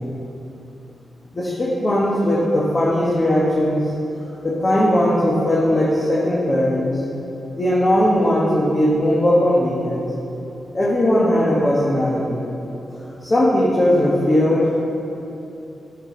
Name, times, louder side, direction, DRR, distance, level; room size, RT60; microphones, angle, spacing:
voice 1, 1.3-3.8 4.1-7.0 7.5-10.1 10.7-12.4 12.9-14.8, left 1 dB, 30° left, -6 dB, 1.4 m, -19 dB
9.8 x 7.0 x 3.9 m, 2.9 s
cardioid pair, 95°, 0 cm